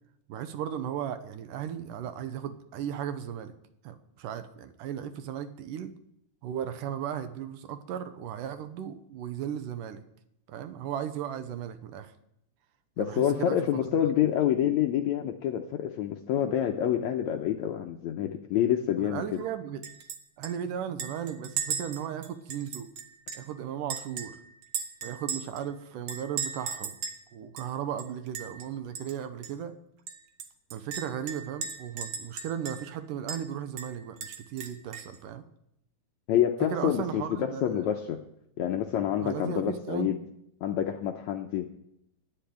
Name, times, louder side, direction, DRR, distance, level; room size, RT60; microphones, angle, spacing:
voice 1, 0.3-3.5 3.8-5.9 6.4-10.0 10.5-12.1 13.0-13.6 19.0-19.9 20.4-22.9 23.3-24.4 25.0-27.0 27.3-29.8 30.7-35.4 36.7-37.9 39.2-40.1, right 9 dB, 75° right, 10 dB, 2.3 m, -36 dB
voice 2, 13.0-19.2 36.3-38.2 38.6-40.2 40.6-41.7, left 10 dB, 80° left, 4 dB, 1.7 m, -27 dB
Chink clink, 19.8-20.2 20.4-20.5 21.0-23.5 23.9-25.6 26.1-27.2 27.6-27.7 28.0-28.6 28.9-29.1 29.4-29.5 30.1-32.9 33.3-33.4 33.8-35.2, right 7 dB, 60° right, 2.0 m, -37 dB
11.5 x 10.0 x 9.2 m, 0.79 s
omnidirectional pair, 4.1 m